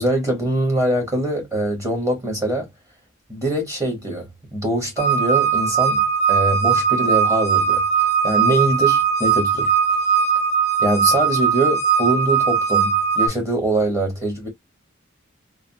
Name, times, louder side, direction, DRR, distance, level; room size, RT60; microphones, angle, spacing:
voice 1, 0.0-2.7 3.3-9.7 10.8-14.5, right 1 dB, 15° right, 1.1 m, -23 dB
sound 1, 5.0-13.3, right 7 dB, 35° left, 0.5 m, -19 dB
3.3 x 2.0 x 2.6 m
head